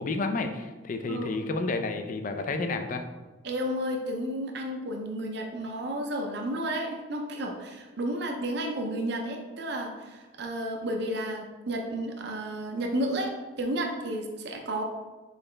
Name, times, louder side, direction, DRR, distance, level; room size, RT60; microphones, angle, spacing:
voice 1, 0.0-3.0, left 3 dB, 45° left, 7 dB, 0.4 m, -30 dB
voice 2, 1.1-1.4 3.4-13.3 13.6-14.8, right 1 dB, 65° right, 2 dB, 0.6 m, -32 dB
4.0 x 4.0 x 3.3 m, 1.2 s
head